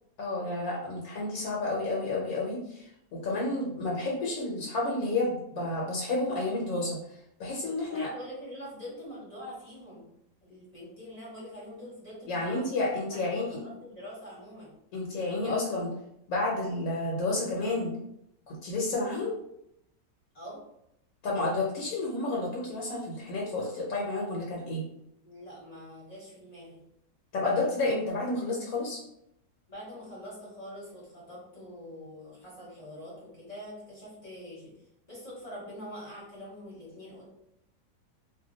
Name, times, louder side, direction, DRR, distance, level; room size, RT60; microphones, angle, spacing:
voice 1, 0.2-7.0 7.4-8.1 12.3-13.6 14.9-15.9 16.3-17.9 18.5-19.3 21.2-24.8 27.3-29.0, left 2 dB, 65° left, -3 dB, 1.0 m, -30 dB
voice 2, 7.8-10.1 10.4-14.7 20.3-20.6 25.2-26.8 29.7-34.7 35.1-37.3, equal, 30° left, -7 dB, 0.8 m, -44 dB
2.7 x 2.2 x 3.8 m, 0.78 s
omnidirectional pair, 1.8 m